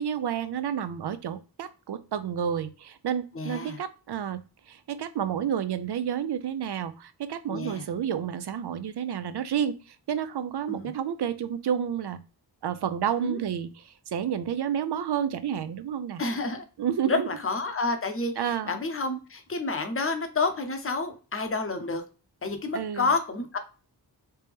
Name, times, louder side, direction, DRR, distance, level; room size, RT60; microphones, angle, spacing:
voice 1, 0.0-12.2 12.6-16.2 16.8-17.3 18.4-18.8 22.7-23.1, right 8 dB, 70° right, 12 dB, 0.5 m, -30 dB
voice 2, 3.3-3.8 7.5-7.9 10.7-10.9 13.2-13.4 16.2-16.6 17.1-22.0 22.4-23.6, left 3 dB, 30° left, 6 dB, 0.7 m, -29 dB
3.3 x 2.8 x 3.5 m, 0.34 s
wide cardioid pair, 85°, 42 cm